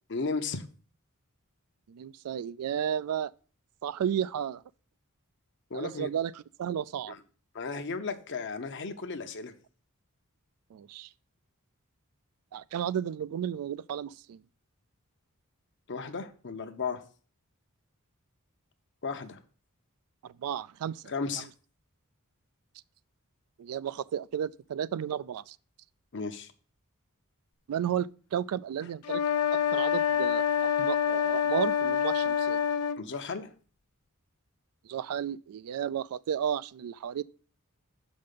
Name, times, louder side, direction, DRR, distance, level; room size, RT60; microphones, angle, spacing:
voice 1, 0.1-0.6 5.7-6.1 7.1-7.2 7.5-9.5 15.9-17.0 19.0-19.4 21.1-21.5 26.1-26.5 33.0-33.5, left 4 dB, 55° left, 0.8 m, -34 dB
voice 2, 1.9-3.3 3.8-4.6 5.7-6.3 6.6-7.1 10.7-11.1 12.5-14.4 20.2-21.0 23.6-25.6 27.7-29.2 29.5-30.4 30.8-32.6 34.8-37.2, right 9 dB, 75° right, 0.3 m, -33 dB
sound 1, 29.0-33.0, left 8 dB, 85° left, 0.5 m, -26 dB
6.6 x 5.2 x 5.2 m
head